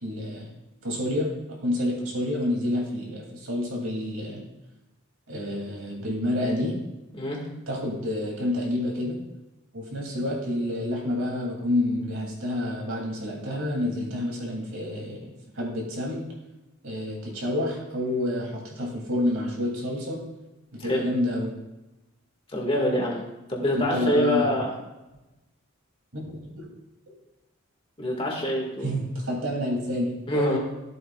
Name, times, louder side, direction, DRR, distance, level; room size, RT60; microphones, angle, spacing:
voice 1, 0.0-0.5 0.8-4.4 5.3-6.8 7.7-9.2 9.7-16.3 16.8-20.2 20.7-21.5 23.7-24.5 26.1-26.7 28.8-30.6, left 1 dB, 75° right, -1 dB, 2.9 m, -29 dB
voice 2, 22.5-23.2 23.5-24.7 28.0-28.9 30.3-30.6, equal, 25° left, -1 dB, 2.0 m, -25 dB
13.5 x 7.7 x 2.4 m, 1.0 s
head